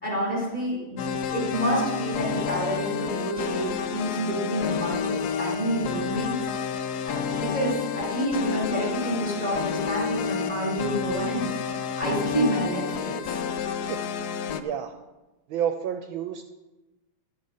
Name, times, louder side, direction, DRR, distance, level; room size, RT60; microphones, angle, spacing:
voice 1, 0.0-6.4 7.1-13.4, right 1 dB, 15° left, -5 dB, 4.8 m, -28 dB
sound 1, 1.0-14.6, left 7 dB, 70° left, 0.9 m, -30 dB
voice 2, 13.8-14.3 14.6-14.9 15.5-16.4, right 9 dB, 75° right, 7 dB, 1.4 m, -30 dB
11.5 x 7.3 x 6.5 m, 1.1 s
omnidirectional pair, 2.4 m